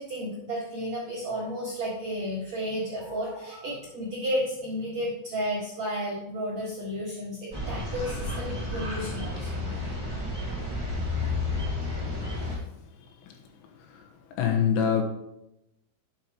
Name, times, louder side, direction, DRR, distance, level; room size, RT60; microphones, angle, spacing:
voice 1, 0.0-9.8, equal, 60° right, -7 dB, 1.8 m, -32 dB
sound 1, 7.5-12.6, left 2 dB, 45° right, 0.5 m, -31 dB
voice 2, 14.4-15.0, left 8 dB, 80° left, 2 dB, 3.8 m, -23 dB
12.0 x 8.3 x 3.0 m, 0.86 s
omnidirectional pair, 5.7 m